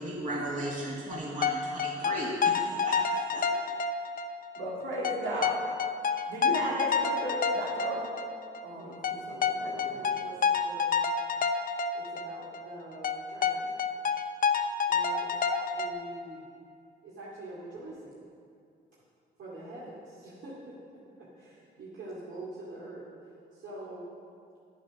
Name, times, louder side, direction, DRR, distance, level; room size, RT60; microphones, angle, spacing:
voice 1, 0.0-3.4, right 1 dB, 40° right, -5 dB, 2.2 m, -35 dB
sound 1, 1.1-4.3 4.6-4.7 5.0-8.6 9.0-12.3 12.5-12.6 13.0-15.9, left 6 dB, 45° left, 0.7 m, -28 dB
voice 2, 4.6-5.6 6.3-8.0 8.6-10.3, right 1 dB, 90° right, -4 dB, 3.1 m, -35 dB
voice 3, 8.7-11.0 11.9-13.7 14.9-15.3 15.7-16.5 17.0-18.2 19.4-23.1 23.5-24.1, right 1 dB, 75° right, -8 dB, 2.5 m, -45 dB
9.8 x 9.6 x 6.1 m, 2.4 s
cardioid pair, 90°, 20 cm